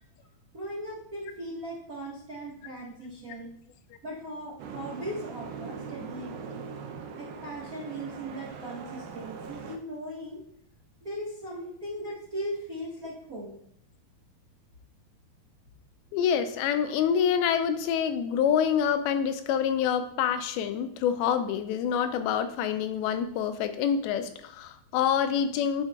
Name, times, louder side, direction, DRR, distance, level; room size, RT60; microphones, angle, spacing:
voice 1, 0.5-3.5 4.0-6.6 7.2-10.4 11.0-13.6, equal, 70° right, -7 dB, 0.8 m, -38 dB
Boat Water vehicle, 4.6-9.8, right 5 dB, 85° right, 2.4 m, -41 dB
voice 2, 16.1-25.8, left 8 dB, 90° left, 9 dB, 2.5 m, -26 dB
11.0 x 4.8 x 2.3 m, 0.71 s
omnidirectional pair, 4.3 m